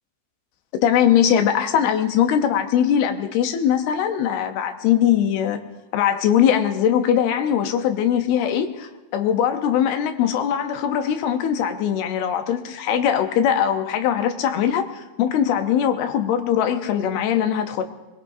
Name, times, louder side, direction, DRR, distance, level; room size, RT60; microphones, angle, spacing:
voice 1, 0.8-5.6 5.9-17.8, left 9 dB, 75° left, 7 dB, 2.7 m, -21 dB
22.0 x 21.0 x 2.7 m, 1.1 s
omnidirectional pair, 4.9 m